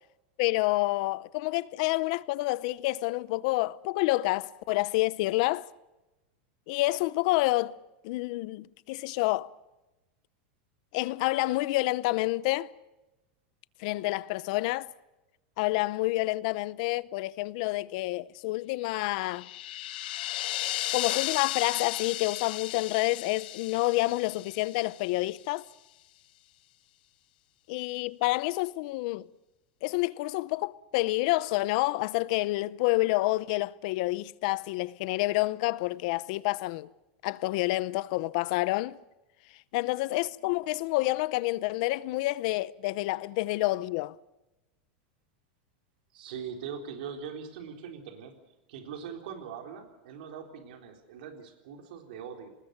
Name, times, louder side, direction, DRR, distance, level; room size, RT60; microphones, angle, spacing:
voice 1, 0.4-5.7 6.7-7.8 8.0-9.5 10.9-12.7 13.8-14.9 15.6-19.5 20.9-25.6 27.7-29.3 29.8-36.9 37.2-39.0 39.7-44.2, left 20 dB, 45° left, 0.7 m, -28 dB
sound 1, 19.0-25.3, left 16 dB, 65° left, 1.0 m, -35 dB
voice 2, 46.1-48.4 48.7-52.6, right 7 dB, 65° right, 4.0 m, -41 dB
27.0 x 20.0 x 6.6 m
supercardioid pair, 170°, 5 cm